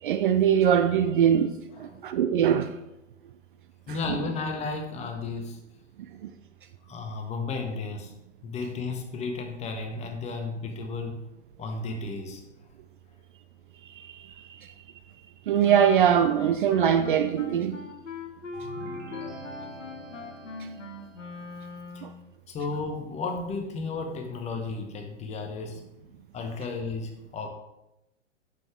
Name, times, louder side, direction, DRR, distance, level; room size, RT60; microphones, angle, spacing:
voice 1, 0.0-1.5 1.8-2.8 14.2-14.3 15.5-17.8 22.0-22.1, right 9 dB, 45° right, 0.5 m, -22 dB
voice 2, 3.9-5.6 6.8-8.1 8.4-11.3 11.6-12.4 21.9-22.1 22.5-25.8 26.3-27.5, left 3 dB, 20° left, 1.2 m, -33 dB
Wind instrument woodwind instrument, 15.6-22.2, left 4 dB, 80° left, 1.1 m, -40 dB
sound 1, 18.5-21.3, right 1 dB, 20° right, 2.0 m, -43 dB
9.6 x 6.8 x 3.6 m
figure-of-eight pair, 110°, 37 cm